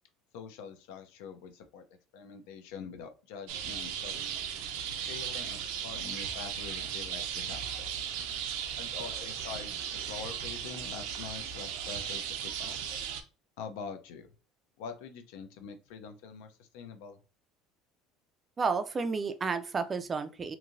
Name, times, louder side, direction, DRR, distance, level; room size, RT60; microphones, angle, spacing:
voice 1, 0.3-1.8 2.1-4.2 5.1-7.9 8.8-12.8 13.6-14.3 14.8-17.2, left 6 dB, 85° left, 0.5 m, -45 dB
sound 1, 3.5-13.2, right 8 dB, 85° right, 0.5 m, -36 dB
voice 2, 18.6-20.6, right 4 dB, 20° right, 0.3 m, -31 dB
3.0 x 2.6 x 2.5 m
cardioid pair, 160°, 0 cm